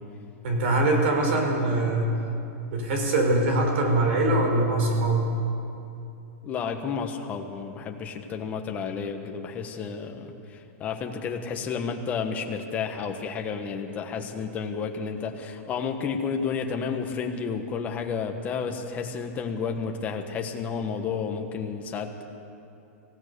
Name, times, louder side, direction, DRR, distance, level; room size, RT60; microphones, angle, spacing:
voice 1, 0.4-2.1 2.7-5.3, right 2 dB, 55° right, 2 dB, 4.7 m, -23 dB
voice 2, 6.4-22.2, left 6 dB, 20° left, 4 dB, 1.4 m, -31 dB
26.0 x 16.5 x 6.9 m, 2.7 s
supercardioid pair, 170°, 8 cm